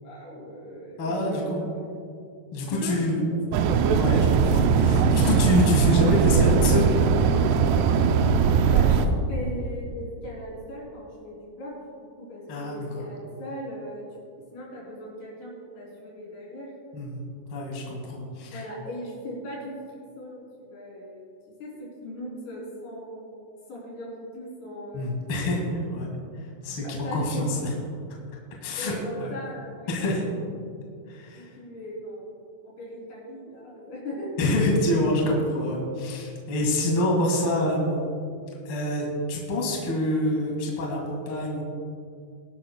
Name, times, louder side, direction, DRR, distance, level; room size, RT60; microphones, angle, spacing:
voice 1, 0.0-1.8 2.7-3.4 8.6-9.0 9.3-14.0 14.5-16.7 18.4-25.1 26.8-27.6 28.8-30.2 31.3-34.3 34.9-35.2, equal, 70° left, -4 dB, 5.4 m, -38 dB
voice 2, 1.0-1.6 2.5-3.2 3.9-6.9 12.5-13.0 16.9-17.2 17.5-18.6 24.9-26.1 26.6-27.7 28.6-28.9 29.2-29.3 29.9-30.2 31.1-31.5 34.4-38.0 38.6-41.6, left 1 dB, 40° left, -2 dB, 2.3 m, -26 dB
sound 1, 3.5-9.1, right 6 dB, 80° right, 2.7 m, -20 dB
21.5 x 11.5 x 2.3 m, 2.3 s
omnidirectional pair, 4.8 m